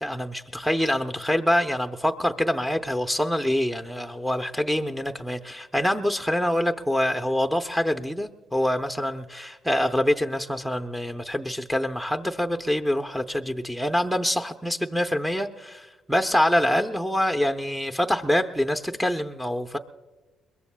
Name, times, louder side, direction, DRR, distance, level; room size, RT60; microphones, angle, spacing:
voice 1, 0.0-19.8, left 1 dB, 5° right, 4 dB, 0.7 m, -25 dB
22.5 x 21.5 x 2.3 m, 1.2 s
cardioid pair, 90°, 0 cm